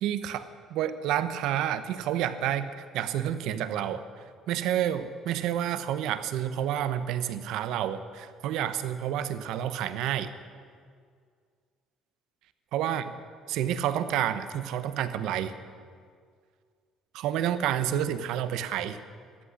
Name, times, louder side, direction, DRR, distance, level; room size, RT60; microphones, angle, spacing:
voice 1, 0.0-4.0 4.5-10.3 12.7-13.1 13.5-15.5 17.1-19.0, right 10 dB, 70° right, 12 dB, 0.8 m, -29 dB
13.5 x 8.8 x 9.5 m, 2.1 s
cardioid pair, 175°, 0 cm